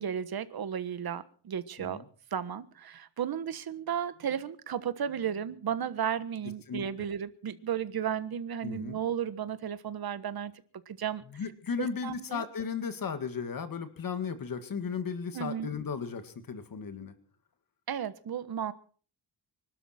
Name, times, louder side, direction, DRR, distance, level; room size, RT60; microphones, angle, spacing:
voice 1, 0.0-2.0 2.3-10.5 10.9-11.2 11.8-12.4 15.3-15.7 17.9-18.7, right 8 dB, 55° right, 13 dB, 1.4 m, -34 dB
voice 2, 6.7-7.1 8.6-9.0 11.3-17.1, left 6 dB, 50° left, 9 dB, 2.0 m, -35 dB
25.0 x 12.5 x 4.4 m, 0.43 s
cardioid pair, 120°, 43 cm